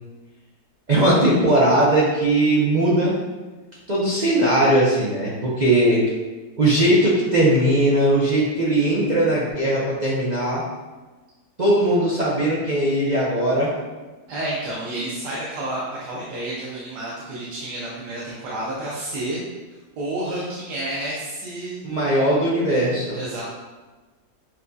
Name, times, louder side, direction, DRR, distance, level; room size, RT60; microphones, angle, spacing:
voice 1, 0.9-3.1 3.9-6.0 6.6-10.6 11.6-13.7 21.8-23.2, right 1 dB, 70° right, -6 dB, 0.4 m, -19 dB
voice 2, 14.3-19.4 19.7-21.8 23.1-23.4, right 1 dB, 85° right, -7 dB, 1.4 m, -30 dB
7.0 x 2.6 x 2.3 m, 1.3 s
omnidirectional pair, 1.7 m